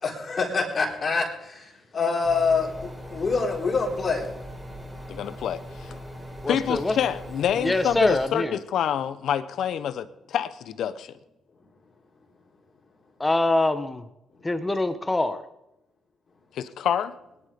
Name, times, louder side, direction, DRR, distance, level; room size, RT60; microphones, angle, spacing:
voice 1, 0.0-4.3, left 4 dB, 40° left, -1 dB, 3.8 m, -26 dB
sound 1, 2.2-8.3, equal, 5° right, 4.1 m, -40 dB
voice 2, 5.1-6.0 6.5-11.1 16.5-17.1, left 9 dB, 70° left, 13 dB, 0.9 m, -27 dB
voice 3, 6.4-6.9 7.6-8.6 13.2-14.0 14.4-15.4, left 2 dB, 15° left, 10 dB, 1.2 m, -24 dB
20.0 x 11.0 x 5.3 m, 0.88 s
cardioid pair, 90°, 0 cm